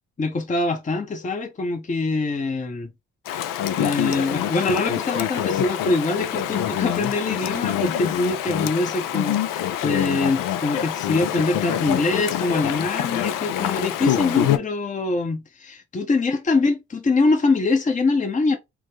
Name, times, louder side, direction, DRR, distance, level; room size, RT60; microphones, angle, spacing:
voice 1, 0.2-2.9 3.8-18.6, left 3 dB, 20° left, 0.7 m, -24 dB
Chatter / Stream, 3.3-14.6, left 11 dB, 60° left, 0.5 m, -25 dB
3.5 x 2.0 x 3.1 m
hypercardioid pair, 40°, 37 cm